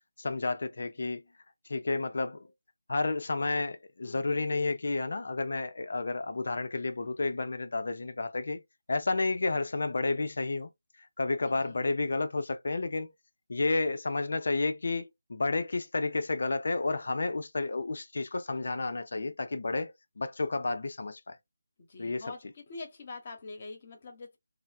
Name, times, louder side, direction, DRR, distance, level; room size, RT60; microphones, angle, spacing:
voice 1, 0.2-1.2 1.7-2.4 2.9-8.6 8.9-10.7 11.2-13.1 13.5-21.4 22.0-22.2, left 3 dB, 55° left, 0.5 m, -31 dB
voice 2, 4.0-4.5 11.4-11.9 21.8-24.4, left 3 dB, 35° left, 0.8 m, -45 dB
3.1 x 2.0 x 2.2 m
figure-of-eight pair, 155°, 0 cm